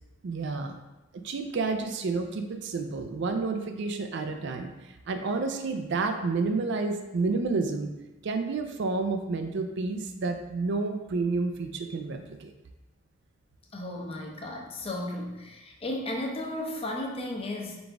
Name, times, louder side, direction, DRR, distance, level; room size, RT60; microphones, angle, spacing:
voice 1, 0.2-0.8 1.2-4.7 5.1-7.9 8.2-12.5, right 3 dB, 65° right, 6 dB, 0.4 m, -30 dB
voice 2, 13.7-17.8, left 1 dB, 30° left, 0 dB, 0.6 m, -34 dB
4.0 x 3.4 x 3.6 m, 1.0 s
head